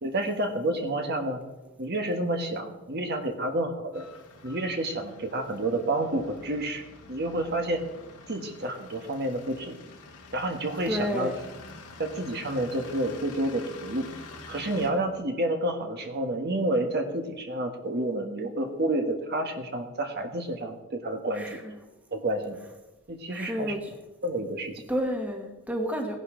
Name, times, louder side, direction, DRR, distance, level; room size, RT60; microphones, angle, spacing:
voice 1, 0.0-1.4 1.8-4.0 4.4-7.8 8.3-9.8 10.3-11.3 12.0-14.1 14.5-21.6 22.1-22.6 23.1-23.7 24.2-24.8, right 1 dB, 45° right, 4 dB, 1.3 m, -29 dB
sound 1, 3.9-14.9, left 3 dB, 85° left, 2.0 m, -47 dB
voice 2, 10.9-11.4 21.3-21.7 23.3-23.9 24.9-26.2, equal, 5° right, 2 dB, 1.4 m, -30 dB
17.5 x 11.0 x 3.8 m, 1.1 s
head